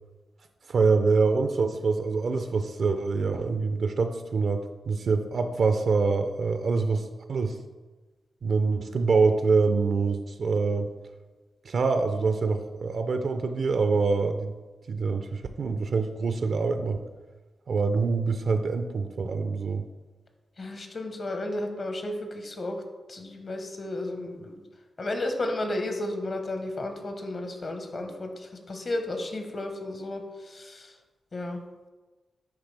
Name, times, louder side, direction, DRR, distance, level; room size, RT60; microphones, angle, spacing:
voice 1, 0.7-7.6 8.4-10.9 11.6-14.6 14.9-17.0 17.7-19.9, right 4 dB, 65° right, 8 dB, 0.4 m, -25 dB
voice 2, 20.6-22.8 23.1-24.6 25.0-30.9 31.3-31.6, left 1 dB, 50° left, 4 dB, 1.0 m, -33 dB
9.7 x 3.5 x 3.3 m, 1.2 s
cardioid pair, 60°, 0 cm